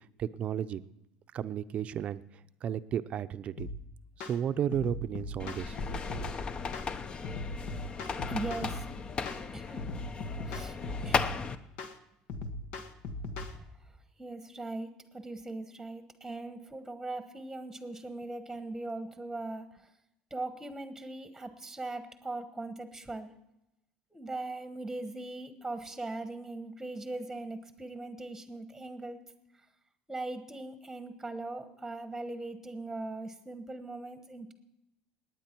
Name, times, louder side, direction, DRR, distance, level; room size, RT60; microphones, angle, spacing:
voice 1, 0.2-0.8 1.3-2.2 2.6-3.7 4.2-6.3, right 9 dB, 45° right, 13 dB, 0.6 m, -33 dB
sound 1, 3.6-3.8 4.2-4.4 4.7-6.3 6.7-6.9 7.2-8.8 9.3-9.4 9.8-11.4 11.8-12.0 12.3-13.5, left 2 dB, 65° left, 1.3 m, -39 dB
sound 2, 5.4-11.5, left 5 dB, 30° left, 0.8 m, -36 dB
voice 2, 8.2-8.9 9.5-9.8 10.5-10.8 11.0-11.3 13.4-13.7 14.2-19.9 20.3-23.3 24.1-29.2 30.1-34.5, right 2 dB, 5° right, 9 dB, 1.2 m, -40 dB
20.0 x 9.1 x 4.5 m, 0.89 s
supercardioid pair, 110°, 3 cm